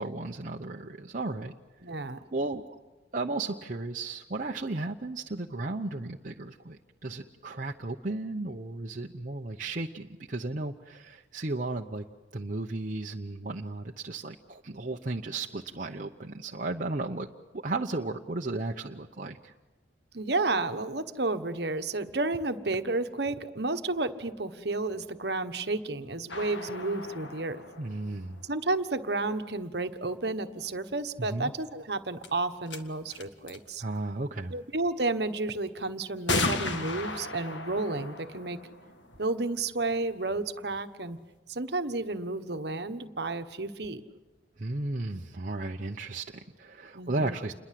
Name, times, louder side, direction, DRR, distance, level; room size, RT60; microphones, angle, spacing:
voice 1, 0.0-1.5 2.3-2.6 3.1-12.0 12.3-17.3 17.5-19.5 27.8-28.4 31.2-31.5 33.8-34.5 44.6-47.5, right 2 dB, 45° right, 1 dB, 0.8 m, -34 dB
voice 2, 1.8-2.2 20.1-27.6 28.4-33.8 34.5-38.6 39.2-41.2 41.5-44.0 46.9-47.4, right 2 dB, 60° right, 9 dB, 1.3 m, -31 dB
sound 1, 26.3-29.0 31.6-31.7 32.2-32.3 32.7-32.8 33.1-33.7 35.0-35.1 36.3-39.8, left 3 dB, 75° left, 1.9 m, -35 dB
28.5 x 22.0 x 7.7 m, 1.2 s
head